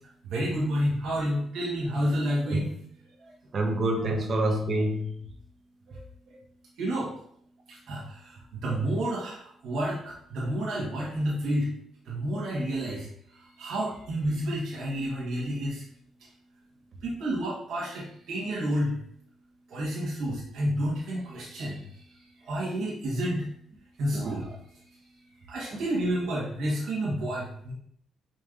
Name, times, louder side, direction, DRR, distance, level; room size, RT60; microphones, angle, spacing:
voice 1, 0.2-2.7 5.9-6.0 6.3-6.4 6.8-7.1 7.7-11.7 12.0-15.8 17.0-18.9 19.7-22.0 22.4-23.5 24.0-24.6 25.5-27.7, right 1 dB, 75° right, -6 dB, 1.3 m, -30 dB
voice 2, 3.5-5.1 24.1-24.3 25.7-25.8, right 1 dB, 50° right, 2 dB, 0.9 m, -27 dB
5.2 x 3.0 x 2.5 m, 0.66 s
cardioid pair, 90°, 0 cm